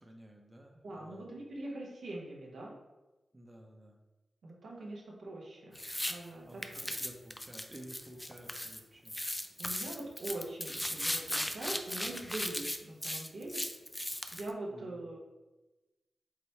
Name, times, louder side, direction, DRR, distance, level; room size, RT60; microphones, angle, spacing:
voice 1, 0.0-1.4 3.3-4.0 6.5-9.2 14.7-15.0, right 1 dB, 20° right, 1 dB, 0.6 m, -53 dB
voice 2, 0.8-2.7 4.4-5.8 6.1-6.9 9.6-13.6 14.3-15.2, right 2 dB, 90° right, -3 dB, 1.0 m, -43 dB
sound 1, 5.7-6.1 6.6-8.8 9.1-14.5, left 1 dB, 10° left, 0.4 m, -37 dB
4.8 x 2.2 x 4.2 m, 1.1 s
cardioid pair, 70°, 0 cm